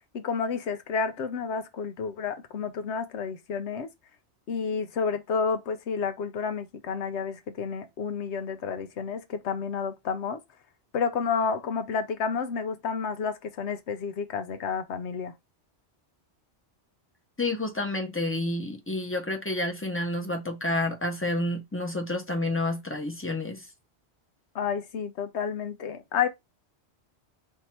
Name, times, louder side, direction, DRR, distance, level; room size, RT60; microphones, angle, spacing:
voice 1, 0.0-3.9 4.5-10.4 10.9-15.3 24.5-26.3, left 6 dB, 75° left, 1.0 m, -30 dB
voice 2, 17.4-23.6, left 2 dB, 15° left, 0.7 m, -29 dB
3.5 x 2.8 x 4.4 m
omnidirectional pair, 1.2 m